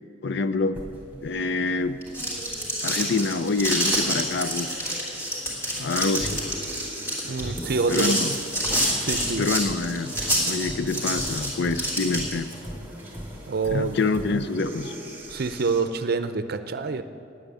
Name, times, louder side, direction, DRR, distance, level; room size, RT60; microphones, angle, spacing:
voice 1, 0.2-0.8 1.2-2.0 2.8-4.9 5.8-6.4 7.9-8.4 9.4-10.1 10.4-12.5 13.7-15.0, left 3 dB, 60° left, 12 dB, 0.5 m, -26 dB
sound 1, 0.7-15.8, right 1 dB, 10° right, 2.6 m, -40 dB
sound 2, 1.9-12.5, equal, 15° left, 3.1 m, -27 dB
voice 2, 7.3-8.2 9.0-9.4 13.5-14.0 15.3-17.0, right 4 dB, 55° right, 11 dB, 0.6 m, -26 dB
9.4 x 9.1 x 9.6 m, 2.5 s
head